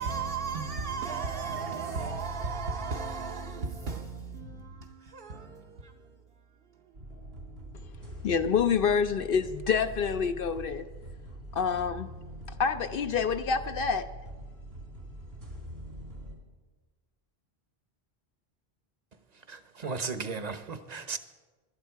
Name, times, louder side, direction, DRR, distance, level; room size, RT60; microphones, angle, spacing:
voice 1, 0.0-6.2 6.7-7.0, right 4 dB, 65° right, 1.0 m, -35 dB
sound 1, 6.9-16.3, right 1 dB, 80° right, 3.0 m, -43 dB
voice 2, 8.2-10.9 11.5-12.1 12.6-14.1, left 6 dB, 65° left, 0.7 m, -27 dB
voice 3, 19.5-21.2, right 4 dB, 45° right, 0.9 m, -35 dB
17.0 x 12.0 x 4.6 m
omnidirectional pair, 1.0 m